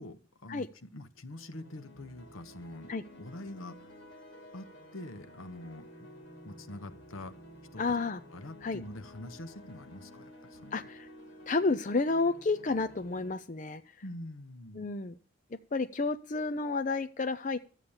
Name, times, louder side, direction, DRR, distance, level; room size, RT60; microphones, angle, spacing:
voice 1, 0.0-2.9 3.2-3.9 4.5-6.1 6.4-7.3 7.7-8.0 8.3-10.8 14.0-14.9, left 1 dB, 80° left, 10 dB, 1.0 m, -45 dB
sound 1, 1.3-13.3, equal, 60° left, 3.2 m, -52 dB
voice 2, 7.8-8.2 8.6-8.8 10.7-11.1 11.5-13.8 14.8-15.1 15.7-17.6, left 3 dB, 35° left, 8 dB, 0.5 m, -30 dB
13.0 x 8.3 x 7.2 m, 0.40 s
head